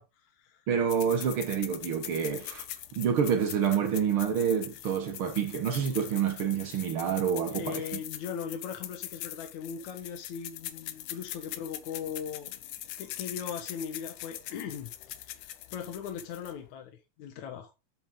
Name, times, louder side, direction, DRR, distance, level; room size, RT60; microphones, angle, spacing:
voice 1, 0.0-0.6 7.5-12.6 13.0-16.9 17.2-17.7, left 7 dB, 70° left, 2.6 m, -39 dB
voice 2, 0.7-2.6 2.9-8.0, right 7 dB, 55° right, 1.7 m, -28 dB
sound 1, 0.9-16.7, left 13 dB, 90° left, 2.5 m, -42 dB
9.4 x 7.7 x 3.8 m
omnidirectional pair, 3.5 m